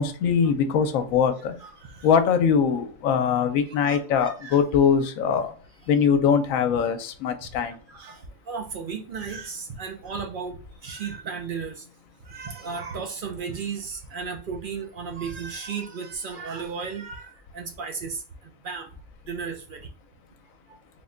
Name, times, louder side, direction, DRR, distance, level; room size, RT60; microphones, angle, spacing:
voice 1, 0.0-1.5 2.0-5.5 5.9-7.8, left 7 dB, 75° left, 8 dB, 1.0 m, -22 dB
voice 2, 1.6-2.1 3.7-4.6 4.9-5.0 7.6-11.8 12.2-18.2 18.6-18.9 19.3-19.9, right 5 dB, 60° right, 4 dB, 0.5 m, -35 dB
3.6 x 2.1 x 3.6 m, 0.41 s
omnidirectional pair, 1.4 m